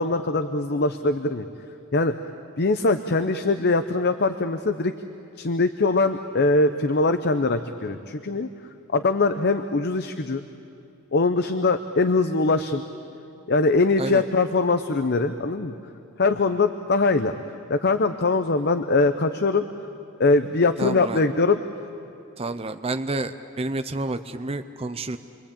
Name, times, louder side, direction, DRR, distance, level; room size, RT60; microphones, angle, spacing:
voice 1, 0.0-1.4 1.9-2.1 2.6-4.9 5.4-8.5 8.9-10.4 11.1-12.8 13.5-15.7 16.2-17.3 17.7-19.6 20.2-21.6, left 3 dB, 45° left, 9 dB, 0.7 m, -22 dB
voice 2, 20.8-21.3 22.4-25.2, right 2 dB, 25° right, 8 dB, 0.6 m, -29 dB
28.0 x 23.0 x 8.7 m, 2.6 s
head